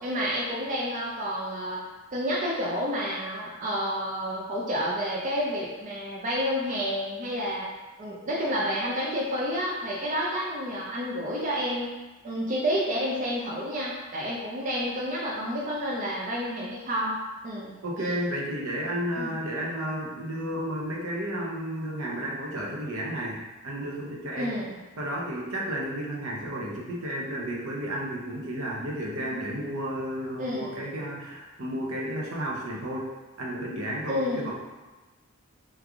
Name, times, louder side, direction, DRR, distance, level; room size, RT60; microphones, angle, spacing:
voice 1, 0.0-1.9 2.1-7.7 8.0-11.9 12.2-17.2 17.4-18.1 19.1-19.4 24.4-24.8 29.2-29.3 30.4-30.9 34.1-34.5, equal, 35° right, -5 dB, 0.4 m, -30 dB
voice 2, 17.8-23.4 23.6-24.6 25.0-33.1 33.4-34.5, right 1 dB, 65° right, -3 dB, 0.7 m, -32 dB
3.2 x 2.4 x 3.4 m, 1.2 s
head